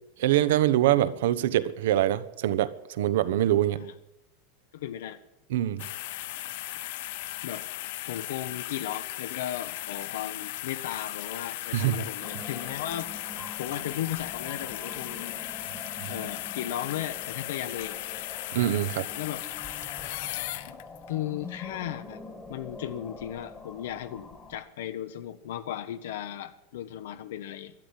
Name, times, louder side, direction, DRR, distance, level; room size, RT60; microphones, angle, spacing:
voice 1, 0.2-2.7 3.0-3.9 5.5-5.9 11.7-12.0 18.5-19.1, right 12 dB, 75° right, 15 dB, 1.0 m, -24 dB
voice 2, 4.7-5.2 7.4-7.7 8.1-13.1 13.6-15.4 16.1-18.0 19.2-19.4 21.1-22.2 22.5-27.7, left 11 dB, 80° left, 9 dB, 1.0 m, -36 dB
sound 1, 5.8-21.1 21.6-21.7, left 16 dB, 55° left, 0.7 m, -37 dB
sound 2, 12.2-24.6, left 3 dB, 10° left, 1.4 m, -45 dB
12.5 x 11.0 x 10.0 m, 0.89 s
supercardioid pair, 170°, 0 cm